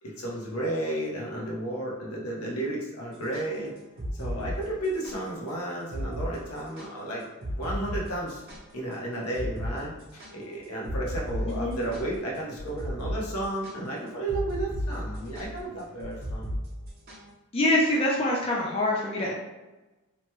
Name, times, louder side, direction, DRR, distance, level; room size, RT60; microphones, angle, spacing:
voice 1, 0.0-3.7 4.2-7.2 7.6-8.4 8.7-16.5, right 1 dB, 90° left, -3 dB, 0.8 m, -33 dB
sound 1, 3.1-5.2 5.5-5.6 5.9-6.3 6.6-8.9 9.3-9.7 10.0-17.3, equal, 45° right, 0.7 m, -35 dB
voice 2, 17.5-19.3, left 1 dB, 25° left, -3 dB, 0.4 m, -24 dB
2.9 x 2.2 x 3.0 m, 1.1 s
head